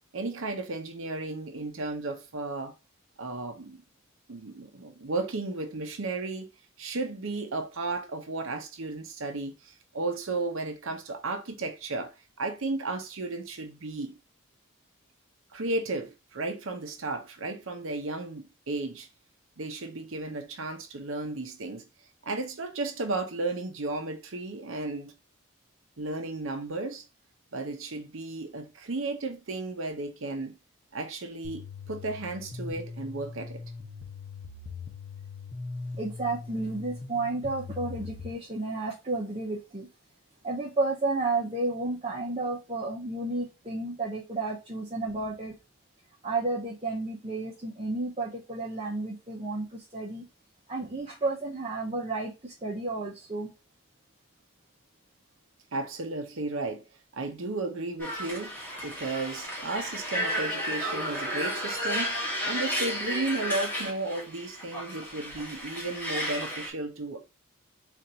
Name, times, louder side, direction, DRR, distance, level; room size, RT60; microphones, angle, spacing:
voice 1, 0.1-2.7 3.2-3.8 4.3-6.5 6.8-14.2 15.5-19.1 19.6-21.8 22.2-25.1 26.0-27.0 27.5-30.6 30.9-33.6 55.7-56.8 57.1-58.5 58.8-62.2 62.4-67.2, right 2 dB, 70° right, 0.7 m, -34 dB
sound 1, 31.4-38.3, left 4 dB, 55° left, 0.9 m, -41 dB
voice 2, 36.0-39.9 40.4-45.5 46.2-50.3 50.7-53.5, right 2 dB, 25° right, 0.7 m, -32 dB
sound 2, 58.0-66.7, equal, 10° left, 1.3 m, -33 dB
3.9 x 2.5 x 4.3 m
head